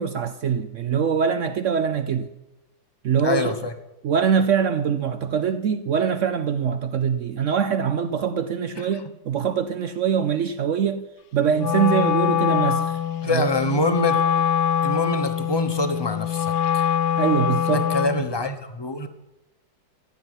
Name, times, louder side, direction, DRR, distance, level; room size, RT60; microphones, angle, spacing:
voice 1, 0.0-2.3 3.0-3.5 4.0-11.0 11.3-12.9 13.2-13.5 17.2-17.9, right 7 dB, 70° right, 0.7 m, -23 dB
voice 2, 3.2-3.7 8.8-8.9 13.2-14.2 14.8-16.9 17.7-19.1, left 2 dB, 20° left, 0.7 m, -25 dB
Wind instrument woodwind instrument, 11.5-18.3, left 10 dB, 70° left, 1.4 m, -23 dB
14.5 x 7.2 x 9.7 m
omnidirectional pair, 2.1 m